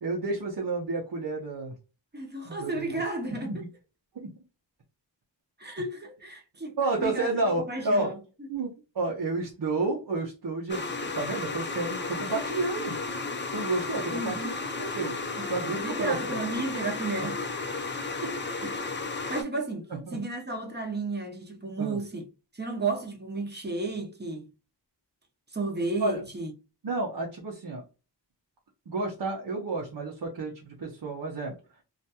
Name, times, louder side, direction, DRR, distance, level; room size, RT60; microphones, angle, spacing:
voice 1, 0.0-1.7 2.4-3.0 3.4-3.6 6.8-8.1 8.5-13.0 13.5-15.1 15.5-16.4 17.2-17.3 19.9-20.2 21.8-22.0 26.0-26.3 26.8-27.8 28.9-31.5, right 3 dB, 60° right, 0.8 m, -31 dB
voice 2, 2.1-3.5 5.6-7.3 7.7-8.5 14.1-14.6 15.4-17.4 18.6-18.8 19.3-22.3 22.5-24.5 25.5-26.5, right 3 dB, 25° right, 0.7 m, -33 dB
sound 1, 10.7-19.4, left 3 dB, 25° left, 0.4 m, -33 dB
2.5 x 2.2 x 2.7 m
wide cardioid pair, 70°, 45 cm